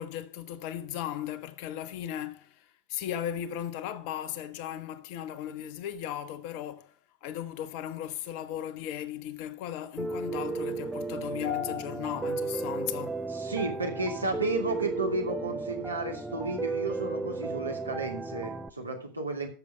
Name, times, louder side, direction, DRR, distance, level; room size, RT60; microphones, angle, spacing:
voice 1, 0.0-6.9 7.2-13.3, left 11 dB, 45° left, 1.0 m, -36 dB
Piano, 10.0-18.7, right 3 dB, 10° right, 0.7 m, -34 dB
voice 2, 13.3-19.5, right 3 dB, 80° right, 2.7 m, -33 dB
13.5 x 6.9 x 5.0 m
figure-of-eight pair, 90°, 0 cm